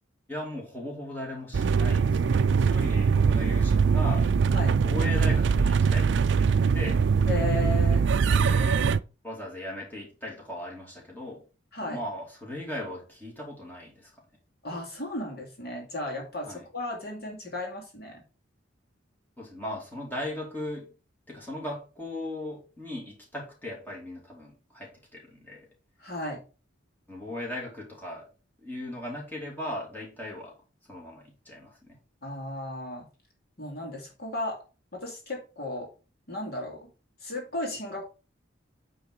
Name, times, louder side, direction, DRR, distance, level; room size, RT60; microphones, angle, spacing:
voice 1, 0.3-4.3 4.6-6.1 6.4-7.0 8.3-8.9 9.2-11.4 11.8-14.1 16.5-16.6 19.4-20.9 21.3-25.7 27.1-28.3 28.6-30.5 30.9-32.0, left 1 dB, 10° left, -3 dB, 2.7 m, -38 dB
sound 1, 1.5-9.0, right 5 dB, 65° right, 0.4 m, -22 dB
voice 2, 7.3-8.0 11.7-12.0 14.6-18.2 26.0-26.4 32.2-33.1 33.6-34.6 34.9-35.9 36.3-36.9 37.2-38.1, left 1 dB, 55° left, 0 dB, 2.5 m, -35 dB
9.1 x 3.9 x 4.6 m, 0.33 s
head